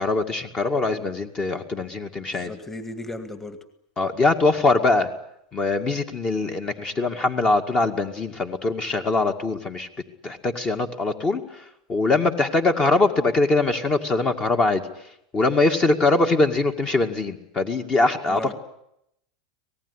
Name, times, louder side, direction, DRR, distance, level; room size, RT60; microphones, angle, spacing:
voice 1, 0.0-2.5 4.0-5.1 5.5-9.9 10.2-14.8 15.3-18.5, left 3 dB, 25° left, 6 dB, 2.1 m, -22 dB
voice 2, 2.3-3.6 18.3-18.5, left 2 dB, 10° left, 9 dB, 2.1 m, -35 dB
26.0 x 19.0 x 9.9 m, 0.77 s
supercardioid pair, 130°, 4 cm